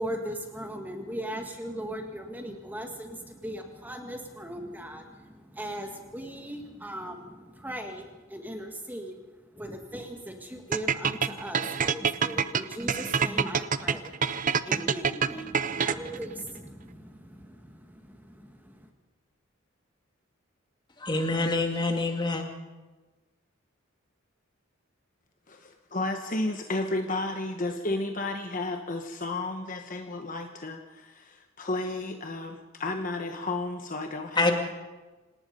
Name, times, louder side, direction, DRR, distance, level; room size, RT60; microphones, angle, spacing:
voice 1, 0.0-9.2 9.5-18.9, right 1 dB, 10° right, 1.9 m, -39 dB
sound 1, 10.7-16.2, right 6 dB, 40° right, 0.6 m, -26 dB
voice 2, 21.0-22.4 34.3-34.5, left 2 dB, 20° left, 2.3 m, -26 dB
voice 3, 25.5-34.5, left 2 dB, 40° left, 1.1 m, -32 dB
26.0 x 18.5 x 5.4 m
head